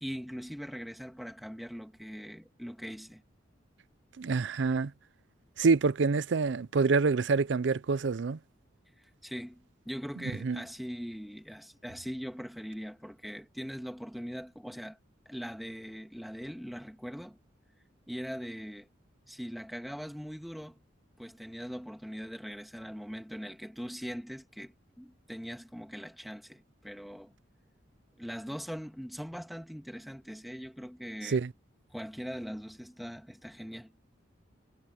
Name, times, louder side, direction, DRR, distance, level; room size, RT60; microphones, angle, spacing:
voice 1, 0.0-3.2 9.0-9.6 9.9-15.0 15.3-17.4 18.1-18.9 19.3-20.7 21.2-27.3 28.2-31.4 31.9-34.0, equal, ahead, 2.1 m, -41 dB
voice 2, 4.2-4.9 5.6-8.4 10.4-10.6 31.2-31.5, right 4 dB, 70° right, 0.5 m, -26 dB
head